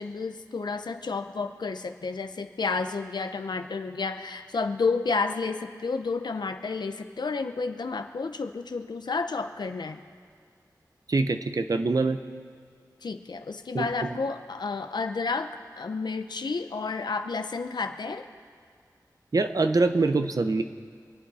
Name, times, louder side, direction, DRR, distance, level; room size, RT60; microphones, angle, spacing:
voice 1, 0.0-10.0 13.0-15.5 15.8-18.3, left 4 dB, 90° left, 7 dB, 0.7 m, -31 dB
voice 2, 11.1-12.2 13.7-14.1 19.3-20.6, right 3 dB, 60° right, 8 dB, 0.8 m, -24 dB
25.5 x 8.7 x 4.2 m, 2.1 s
wide cardioid pair, 80°, 7 cm